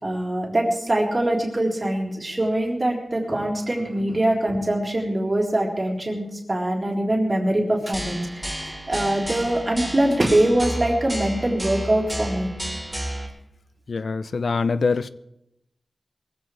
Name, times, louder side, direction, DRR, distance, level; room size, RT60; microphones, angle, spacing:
voice 1, 0.0-12.5, right 1 dB, 30° right, 3.9 m, -23 dB
sound 1, 7.9-13.3, right 1 dB, 10° right, 4.0 m, -32 dB
voice 2, 13.9-15.1, left 4 dB, 70° left, 0.6 m, -24 dB
22.0 x 15.5 x 3.4 m
wide cardioid pair, 80°, 0 cm